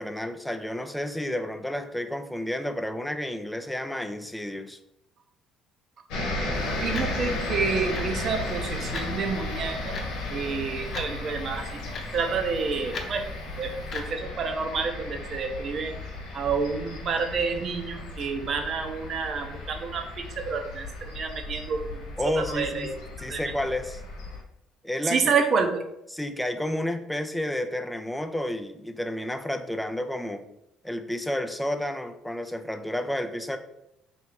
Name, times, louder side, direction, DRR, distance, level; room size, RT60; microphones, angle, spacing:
voice 1, 0.0-4.8 22.2-22.9 23.2-24.0 24.8-25.3 26.1-30.4 30.8-33.6, left 1 dB, 5° left, 8 dB, 0.4 m, -31 dB
sound 1, 6.1-24.4, left 2 dB, 85° left, 1.1 m, -35 dB
sound 2, 6.5-14.1, left 3 dB, 50° left, 0.8 m, -42 dB
voice 2, 6.8-10.0 10.3-11.7 12.1-13.2 13.6-15.9 16.3-22.1 22.5-22.9 23.3-23.4 25.1-25.8, right 5 dB, 50° right, 5 dB, 0.7 m, -29 dB
3.5 x 2.7 x 4.5 m, 0.83 s
supercardioid pair, 85°, 0 cm